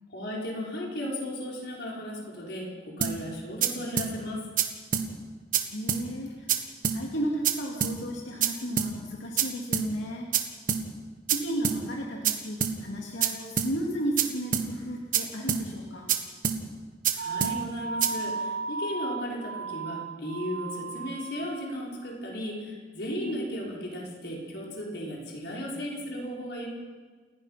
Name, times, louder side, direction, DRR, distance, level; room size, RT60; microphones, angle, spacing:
voice 1, 0.1-4.4 17.1-26.7, equal, 60° left, -3 dB, 5.5 m, -35 dB
sound 1, 3.0-3.1 3.6-3.7 4.0-4.1 4.6-4.7 4.9-5.1 5.5-5.6 5.9-6.0 6.5-6.6 6.8-7.0 7.4-7.5 7.8-7.9 8.4-8.5 8.8-8.9 9.4-9.5 9.7-9.9 10.3-10.4 10.7-10.8 11.3-11.4 11.6-11.8 12.2-12.3 12.6-12.7 13.2-13.3 13.6-13.7 14.2-14.3 14.5-14.7 15.1-15.2 15.5-15.6 16.1-16.2 16.4-16.6 17.0-17.1 17.4-17.5 18.0-18.1, right 7 dB, 45° right, 1.6 m, -25 dB
voice 2, 5.7-6.6 6.9-10.3 11.3-16.1 23.2-23.4, right 1 dB, 90° left, -2 dB, 2.6 m, -34 dB
sound 2, 17.2-21.8, right 4 dB, 65° right, 0.7 m, -35 dB
29.5 x 16.0 x 5.9 m, 1.4 s
head